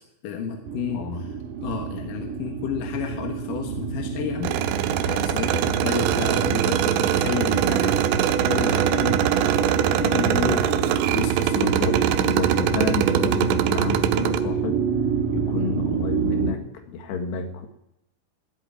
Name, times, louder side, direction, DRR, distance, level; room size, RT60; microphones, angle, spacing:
voice 1, 0.2-1.3 1.6-4.5 5.0-8.1 8.5-9.3 10.0-10.8 11.1-12.1, left 6 dB, 60° left, 3 dB, 2.6 m, -31 dB
sound 1, 0.7-16.5, right 7 dB, 60° right, 2.4 m, -27 dB
sound 2, 4.4-14.4, right 10 dB, 85° right, 3.0 m, -23 dB
voice 2, 11.5-14.8 15.3-17.7, left 5 dB, 80° left, 5 dB, 3.8 m, -30 dB
15.5 x 8.4 x 9.8 m, 0.83 s
omnidirectional pair, 5.0 m